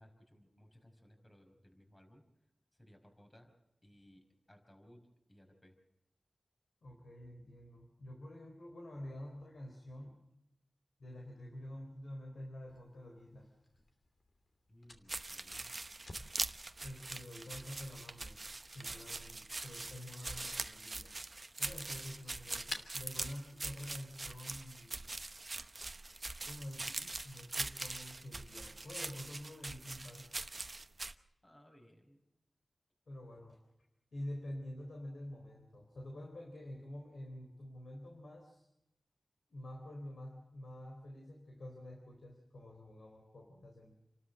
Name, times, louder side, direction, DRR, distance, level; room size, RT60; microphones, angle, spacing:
voice 1, 0.0-2.2 2.8-3.5 3.8-5.8 14.7-15.7 18.8-19.1 26.7-27.1 31.4-32.2, equal, 25° left, 4 dB, 5.2 m, -62 dB
voice 2, 6.8-10.2 11.0-13.5 16.8-18.4 18.7-21.2 21.6-25.1 26.5-26.9 27.2-30.3 33.1-33.6 34.1-38.7 39.5-43.9, left 1 dB, 80° left, 2 dB, 3.9 m, -48 dB
Fire, 12.7-24.2, left 2 dB, 55° left, 2.9 m, -55 dB
sound 1, 15.1-31.1, right 2 dB, 45° right, 1.0 m, -43 dB
29.0 x 12.5 x 7.7 m, 0.86 s
cardioid pair, 50°, 0 cm